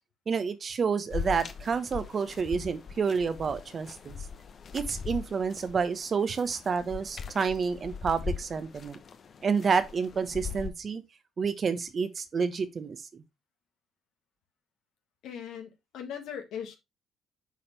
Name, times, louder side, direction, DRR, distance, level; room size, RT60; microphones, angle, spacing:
voice 1, 0.3-4.1 4.7-9.0 9.4-11.0 11.4-13.2, right 5 dB, 45° right, 1.0 m, -29 dB
sound 1, 1.1-10.7, left 6 dB, 50° left, 0.9 m, -40 dB
voice 2, 15.2-16.8, left 8 dB, 70° left, 1.6 m, -39 dB
8.3 x 4.2 x 3.2 m
hypercardioid pair, 55°, 0 cm